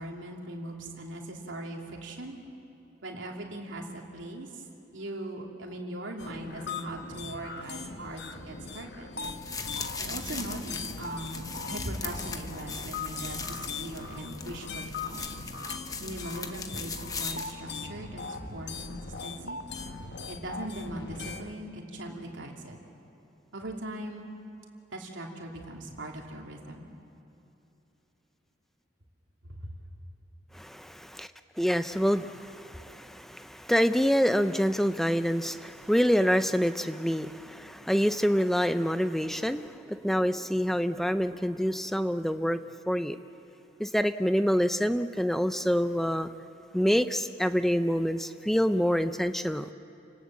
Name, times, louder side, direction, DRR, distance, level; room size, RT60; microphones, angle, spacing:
voice 1, 0.0-2.4 3.0-4.6 4.9-9.1 10.0-15.4 16.0-19.6 20.3-22.8 23.5-24.3 24.9-26.9 29.4-29.7, right 1 dB, 80° right, 0 dB, 2.8 m, -40 dB
sound 1, 6.2-21.5, left 4 dB, 60° left, 1.2 m, -40 dB
sound 2, 9.2-17.5, left 4 dB, 20° left, 0.9 m, -39 dB
voice 2, 30.5-31.3 31.6-42.6 42.9-43.2 43.8-46.3 46.7-49.7, equal, ahead, 10 dB, 0.5 m, -26 dB
30.0 x 18.5 x 7.6 m, 2.9 s
head